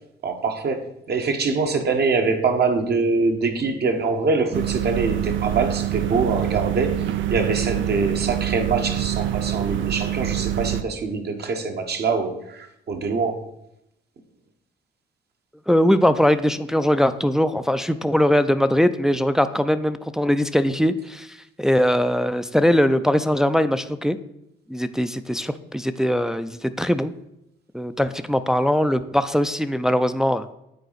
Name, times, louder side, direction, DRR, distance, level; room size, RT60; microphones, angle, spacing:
voice 1, 0.2-6.9 7.3-13.5, right 4 dB, 55° right, 5 dB, 1.1 m, -24 dB
sound 1, 4.5-10.8, right 11 dB, 75° right, 0.5 m, -25 dB
voice 2, 15.7-24.2 24.7-27.1 27.7-30.5, equal, 5° right, 10 dB, 0.3 m, -21 dB
9.3 x 4.1 x 4.0 m, 0.82 s
cardioid pair, 90°, 20 cm